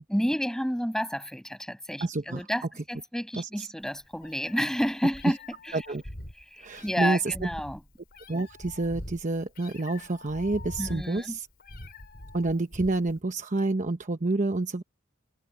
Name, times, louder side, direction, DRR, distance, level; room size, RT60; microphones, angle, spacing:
voice 1, 0.1-5.4 5.6-5.8 6.5-7.8 10.8-11.4, equal, 5° left, 7.5 m, -30 dB
voice 2, 2.0-2.4 3.3-3.7 5.7-6.0 6.6-7.5 8.3-11.5 12.3-14.8, right 2 dB, 40° right, 1.0 m, -28 dB
Meow, 3.8-13.2, left 1 dB, 50° left, 5.6 m, -44 dB
head